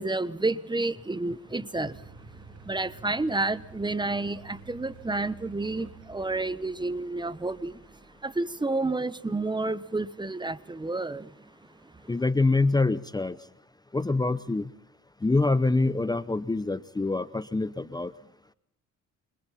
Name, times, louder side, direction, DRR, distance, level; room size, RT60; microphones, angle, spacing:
voice 1, 0.0-2.0 2.4-11.3 11.8-12.1, right 2 dB, 15° right, 16 dB, 1.1 m, -30 dB
sound 1, 1.8-8.8, right 5 dB, 60° right, 2.2 m, -51 dB
voice 2, 12.1-13.4 13.9-14.7 15.2-18.1, left 3 dB, 15° left, 14 dB, 0.8 m, -25 dB
28.5 x 25.5 x 4.2 m, 0.70 s
cardioid pair, 90°, 30 cm